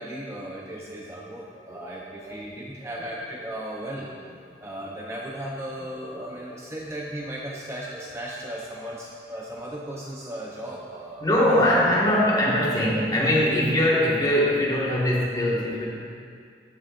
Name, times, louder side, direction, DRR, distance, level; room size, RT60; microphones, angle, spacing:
voice 1, 0.0-4.1 4.6-11.2 11.6-11.7, right 1 dB, 15° right, -3 dB, 0.7 m, -36 dB
voice 2, 1.5-2.9 5.4-5.9 11.2-15.9, left 1 dB, 25° left, -5 dB, 1.7 m, -23 dB
13.5 x 8.6 x 2.5 m, 2.2 s
head